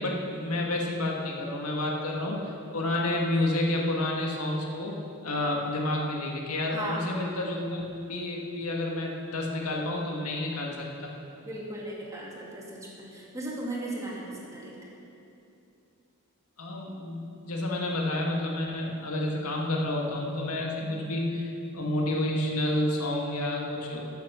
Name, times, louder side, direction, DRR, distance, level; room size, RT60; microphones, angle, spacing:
voice 1, 0.0-2.4 2.7-5.0 5.2-10.9 16.6-24.0, left 1 dB, 80° left, -1 dB, 1.7 m, -30 dB
voice 2, 6.7-7.0 11.4-14.7, right 1 dB, 15° right, -5 dB, 2.4 m, -37 dB
14.0 x 7.4 x 6.2 m, 2.8 s
head